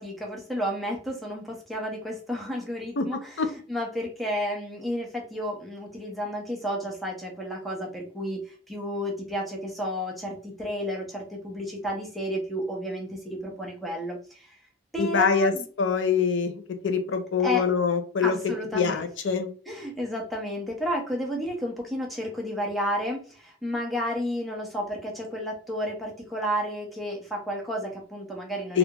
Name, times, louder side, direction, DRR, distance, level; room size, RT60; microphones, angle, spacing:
voice 1, 0.0-14.6 14.9-15.7 17.4-17.7 18.2-19.0 19.7-28.8, equal, ahead, -1 dB, 0.8 m, -32 dB
voice 2, 15.0-15.5 15.8-18.4 18.7-19.5 28.7-28.8, left 5 dB, 85° left, 7 dB, 0.5 m, -24 dB
3.4 x 2.4 x 2.9 m, 0.41 s
head